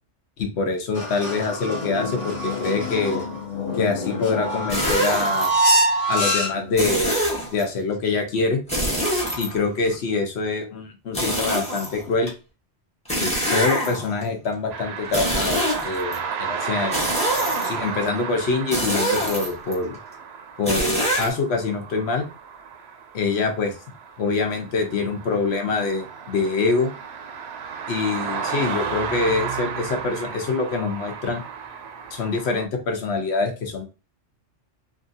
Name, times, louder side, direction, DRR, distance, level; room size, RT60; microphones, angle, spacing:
voice 1, 0.4-3.2 3.8-5.5 6.1-7.1 7.5-8.6 9.4-12.3 13.2-17.1 17.6-20.0 20.6-22.2 23.1-23.7 24.2-26.9 27.9-31.4 32.1-33.9, left 4 dB, 65° left, 4 dB, 0.9 m, -25 dB
sound 1, 1.0-6.8, equal, 35° left, 0.8 m, -25 dB
sound 2, 4.7-5.5 6.8-7.6 8.7-9.9 11.1-12.3 13.1-14.2 15.0-16.2 16.9-17.9 18.7-19.7 20.6-21.3, equal, 5° left, 0.9 m, -25 dB
sound 3, 14.7-32.7, right 6 dB, 70° right, 0.8 m, -33 dB
2.8 x 2.5 x 2.6 m, 0.31 s
omnidirectional pair, 1.2 m